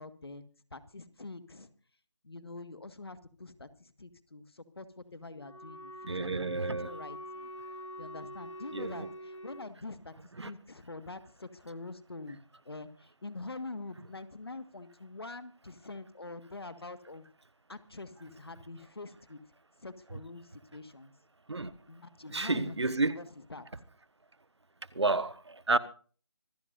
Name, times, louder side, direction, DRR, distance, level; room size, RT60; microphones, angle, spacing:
voice 1, 0.0-1.7 2.2-6.4 6.8-7.5 8.0-10.1 10.4-12.4 12.7-17.3 17.7-19.4 19.8-21.1 21.9-23.7, left 3 dB, 55° left, 1.7 m, -45 dB
Wind instrument woodwind instrument, 5.4-9.7, equal, 85° left, 1.4 m, -45 dB
voice 2, 6.1-6.9 8.7-9.1 10.4-10.5 21.5-21.7 22.3-23.2 24.9-25.8, right 3 dB, 65° right, 1.3 m, -30 dB
25.5 x 13.0 x 2.6 m
figure-of-eight pair, 180°, 15 cm